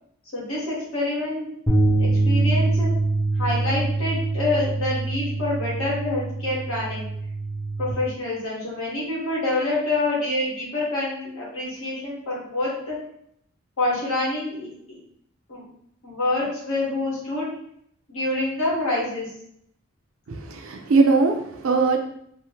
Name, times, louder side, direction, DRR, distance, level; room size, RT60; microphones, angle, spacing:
voice 1, 0.3-1.5 2.0-2.9 3.3-7.1 7.8-13.0 13.8-14.7 15.5-15.6 16.0-17.5 18.1-19.3, left 2 dB, 80° left, -6 dB, 1.3 m, -26 dB
sound 1, 1.7-7.9, right 2 dB, 10° left, 0.4 m, -24 dB
voice 2, 20.3-22.0, right 4 dB, 70° right, 4 dB, 0.4 m, -20 dB
2.8 x 2.0 x 2.8 m, 0.70 s
head